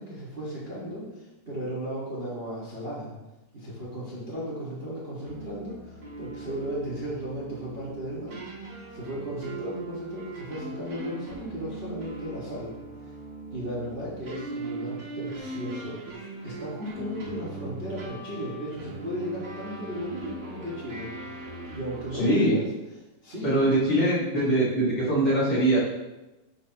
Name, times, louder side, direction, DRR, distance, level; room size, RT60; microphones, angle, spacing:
voice 1, 0.0-3.1 3.5-8.4 8.9-12.7 13.0-13.1 13.5-21.4 21.7-22.6 23.2-23.6, equal, 50° right, -8 dB, 0.6 m, -35 dB
sound 1, 5.3-22.2, right 2 dB, 35° right, 1.6 m, -40 dB
voice 2, 22.2-22.5 23.4-25.8, right 1 dB, 45° left, -8 dB, 1.9 m, -22 dB
11.0 x 4.5 x 2.9 m, 1.0 s
omnidirectional pair, 4.2 m